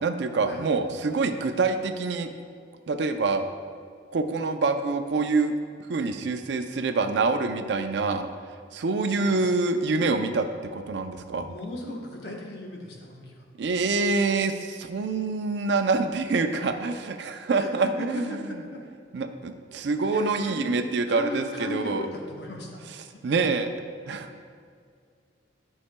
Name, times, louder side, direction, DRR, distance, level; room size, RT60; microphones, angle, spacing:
voice 1, 0.0-2.3 2.9-3.5 4.1-5.5 5.9-8.3 8.7-11.5 13.6-18.5 19.1-22.0 23.2-23.7 24.1-24.3, right 3 dB, 65° right, 7 dB, 0.4 m, -26 dB
voice 2, 9.0-9.5 11.5-13.3 17.5-17.7 18.0-18.8 20.1-20.8 21.1-22.8, left 1 dB, 60° left, -1 dB, 1.0 m, -36 dB
11.5 x 5.6 x 2.2 m, 2.2 s
head